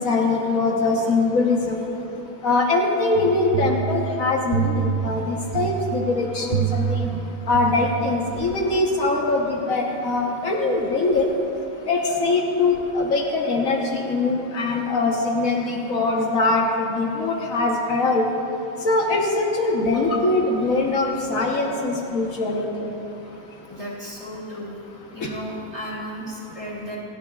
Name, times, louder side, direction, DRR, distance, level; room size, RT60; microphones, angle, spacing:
voice 1, 0.0-1.8 2.4-7.0 7.5-11.2 11.9-18.2 18.8-22.7, left 3 dB, 75° left, 0 dB, 1.5 m, -22 dB
sound 1, 3.1-8.4, right 7 dB, 75° right, 0.4 m, -27 dB
voice 2, 23.7-24.7 25.1-27.0, equal, 25° right, -6 dB, 2.8 m, -34 dB
27.5 x 10.5 x 2.3 m, 2.8 s
omnidirectional pair, 1.5 m